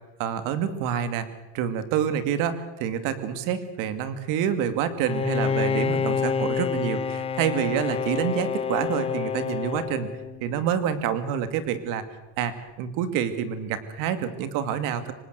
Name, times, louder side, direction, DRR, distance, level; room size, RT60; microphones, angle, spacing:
voice 1, 0.2-1.2 1.5-10.1 10.4-12.0 12.4-15.1, right 8 dB, 60° right, 10 dB, 2.5 m, -27 dB
Bowed string instrument, 5.0-10.6, left 6 dB, 15° left, 0.7 m, -28 dB
26.0 x 19.5 x 8.1 m, 1.0 s
cardioid pair, 150°, 35 cm